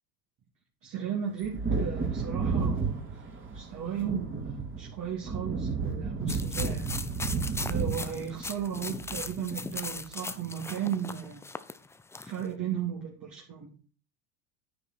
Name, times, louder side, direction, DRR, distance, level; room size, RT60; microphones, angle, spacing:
voice 1, 0.8-3.2 3.5-6.9 7.7-11.4 12.2-13.7, right 8 dB, 40° right, 3.2 m, -35 dB
Wind / Thunder, 1.4-9.7 10.0-10.1, right 4 dB, 25° right, 3.4 m, -32 dB
sound 1, 6.3-12.5, left 3 dB, 5° left, 0.4 m, -38 dB
9.9 x 9.6 x 4.4 m
hypercardioid pair, 95°, 49 cm